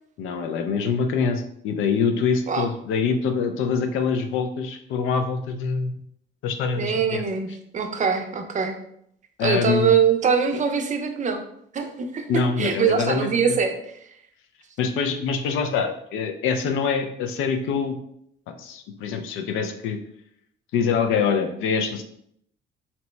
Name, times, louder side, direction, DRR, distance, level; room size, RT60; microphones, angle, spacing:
voice 1, 0.2-5.9 6.4-7.2 9.4-9.9 12.3-13.6 14.8-18.0 18.5-20.0 20.7-22.0, left 5 dB, 90° left, 6 dB, 0.4 m, -25 dB
voice 2, 6.7-8.8 9.4-11.4 11.7-13.8, right 6 dB, 40° right, 5 dB, 0.5 m, -23 dB
2.8 x 2.1 x 3.1 m, 0.70 s
cardioid pair, 90°, 20 cm